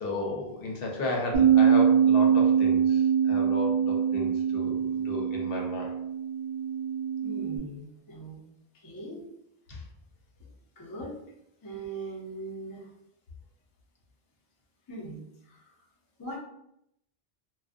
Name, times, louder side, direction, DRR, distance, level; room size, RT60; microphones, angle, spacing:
voice 1, 0.0-5.9 9.7-9.8, left 2 dB, 65° left, 0 dB, 0.8 m, -34 dB
Bass guitar, 1.3-7.6, right 8 dB, 50° right, 0.6 m, -24 dB
voice 2, 7.2-8.4 8.7-9.3 10.8-11.2 11.6-12.9 14.9-15.7 16.2-16.4, right 2 dB, 30° left, -3 dB, 0.4 m, -40 dB
2.5 x 2.2 x 2.4 m, 0.78 s
omnidirectional pair, 1.0 m